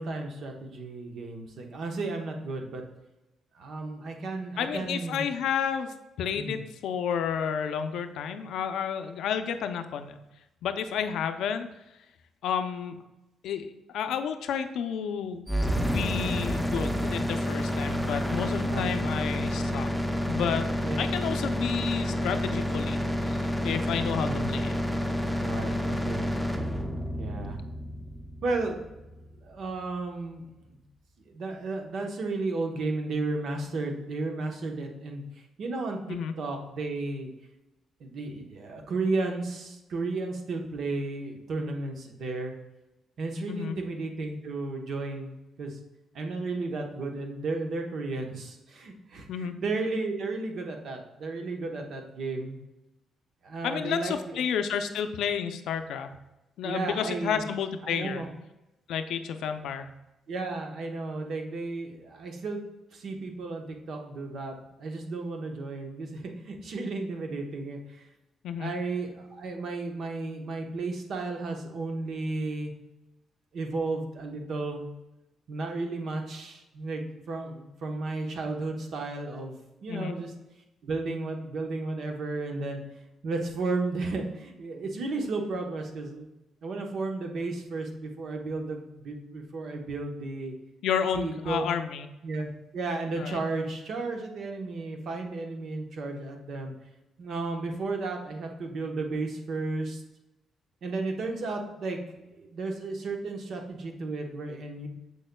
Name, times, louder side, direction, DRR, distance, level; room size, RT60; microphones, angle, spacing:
voice 1, 0.0-2.8 3.5-5.3 6.4-6.6 18.6-19.0 20.8-21.0 24.2-24.6 25.4-26.3 27.2-27.6 28.4-28.9 29.4-30.5 30.7-30.8 31.3-35.2 35.6-36.0 36.4-37.3 38.0-42.5 43.2-45.8 46.1-52.6 53.4-54.4 56.6-57.4 57.8-58.3 60.3-62.6 62.9-68.1 68.6-72.7 73.5-74.9 75.5-77.0 77.3-79.6 79.8-80.3 80.8-82.8 83.2-86.3 86.6-90.5 91.1-91.7 92.2-96.7 97.2-100.0 100.8-102.0 102.4-104.9, right 3 dB, 65° right, 3 dB, 1.0 m, -33 dB
voice 2, 4.6-10.2 10.6-11.7 12.4-13.0 13.4-15.5 15.7-19.9 20.3-20.6 21.0-24.7 36.1-36.3 43.5-43.8 49.3-49.5 53.6-56.1 56.6-58.2 58.9-59.9 68.4-68.7 79.9-80.2 90.8-92.1 93.2-93.4, left 7 dB, 80° left, 8 dB, 0.5 m, -31 dB
sound 1, 15.5-29.4, equal, 5° right, 0.7 m, -29 dB
7.0 x 6.4 x 2.2 m, 0.97 s
cardioid pair, 90°, 0 cm